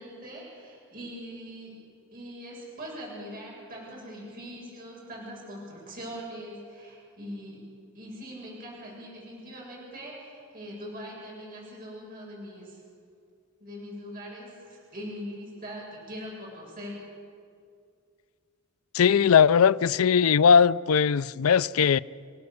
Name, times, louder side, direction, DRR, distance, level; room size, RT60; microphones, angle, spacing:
voice 1, 0.0-1.8 2.1-7.6 7.9-12.8 13.6-17.0, equal, 45° right, 7.1 m, -41 dB
voice 2, 18.9-22.0, left 7 dB, 80° left, 0.5 m, -19 dB
29.5 x 16.5 x 7.0 m
head